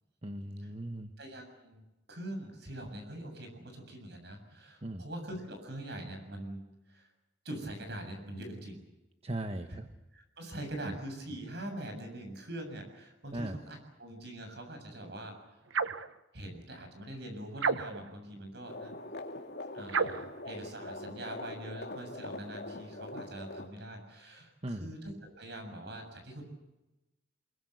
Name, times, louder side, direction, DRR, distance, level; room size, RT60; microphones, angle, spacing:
voice 1, 0.2-1.1 4.8-5.0 9.2-9.9 10.8-11.0 13.3-13.6 24.6-24.9, right 1 dB, 30° right, 7 dB, 1.2 m, -38 dB
voice 2, 1.2-1.8 2.1-6.6 6.9-7.1 7.4-8.8 9.7-9.8 10.1-15.3 16.3-18.9 19.7-26.4, right 1 dB, 60° right, 5 dB, 7.2 m, -43 dB
sound 1, 15.7-16.1 17.6-18.2 19.9-20.3, right 5 dB, 85° right, 1.0 m, -31 dB
sound 2, 18.6-23.7, left 2 dB, 55° left, 2.4 m, -43 dB
24.5 x 22.5 x 8.0 m, 0.98 s
head